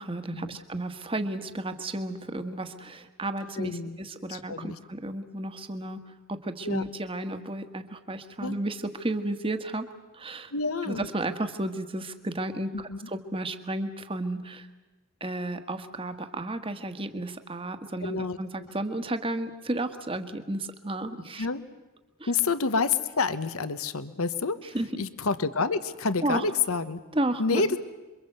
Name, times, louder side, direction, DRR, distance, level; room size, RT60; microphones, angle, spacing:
voice 1, 0.0-6.0 6.3-9.9 10.1-10.5 10.8-14.7 15.2-21.5 22.2-22.3 24.7-24.9 26.2-26.5 27.1-27.6, right 1 dB, 25° right, 8 dB, 1.5 m, -33 dB
voice 2, 3.6-4.0 4.3-4.8 6.6-6.8 8.4-8.6 10.5-11.1 12.7-13.0 18.0-18.7 21.4-21.6 22.3-24.6 25.0-27.0 27.4-27.8, left 4 dB, 75° left, 13 dB, 1.1 m, -28 dB
27.5 x 24.0 x 8.0 m, 1.2 s
head